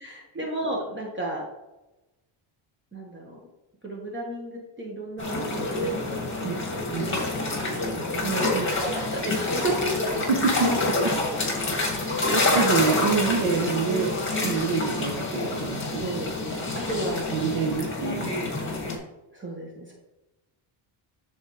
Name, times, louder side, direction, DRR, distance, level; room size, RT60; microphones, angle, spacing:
voice 1, 0.0-1.4 2.9-3.4 3.8-8.2 8.7-9.9 16.0-17.8 19.3-19.9, right 1 dB, 25° right, -2 dB, 1.5 m, -34 dB
sound 1, 5.2-19.0, left 2 dB, 25° left, 2.1 m, -27 dB
voice 2, 8.2-8.7 10.3-11.1 12.3-16.1 17.3-18.4, right 5 dB, 85° right, 0 dB, 1.2 m, -27 dB
12.0 x 4.2 x 3.3 m, 0.99 s
cardioid pair, 120°, 49 cm